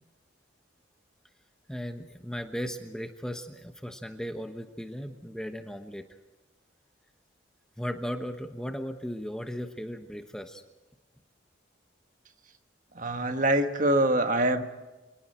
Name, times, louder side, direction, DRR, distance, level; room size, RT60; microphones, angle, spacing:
voice 1, 1.7-6.0 7.8-10.6, equal, 5° left, 6 dB, 1.1 m, -36 dB
voice 2, 12.9-14.6, right 1 dB, 40° right, 7 dB, 1.5 m, -24 dB
29.0 x 26.5 x 4.4 m, 1.1 s
head